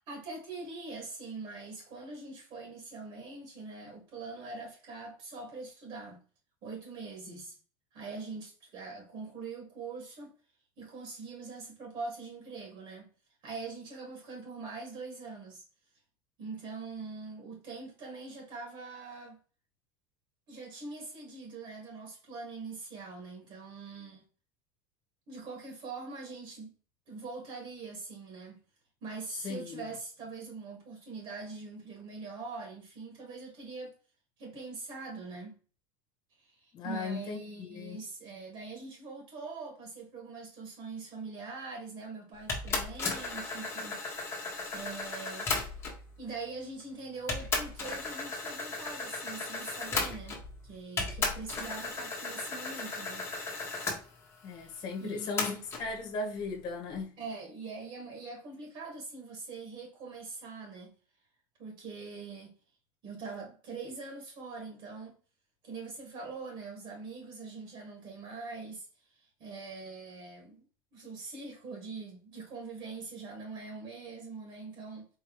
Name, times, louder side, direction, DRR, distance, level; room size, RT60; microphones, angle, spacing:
voice 1, 0.1-6.2 6.6-7.5 7.9-10.3 10.8-13.1 13.4-15.6 16.4-19.4 20.5-24.2 25.3-26.7 27.1-28.6 29.0-33.9 34.4-35.6 36.4-44.3 44.7-45.5 46.2-53.3 55.0-55.6 57.2-60.9 61.6-62.6 63.0-65.1 65.6-70.6 70.9-75.1, right 4 dB, 45° right, 2.0 m, -43 dB
voice 2, 29.3-29.8 36.7-38.0 54.4-57.2, left 3 dB, 40° left, 1.4 m, -37 dB
sound 1, 42.5-46.1 46.8-46.9 47.3-50.6 51.0-54.0 55.4-55.9, left 3 dB, 20° left, 1.3 m, -35 dB
4.6 x 3.1 x 3.1 m
supercardioid pair, 145°, 12 cm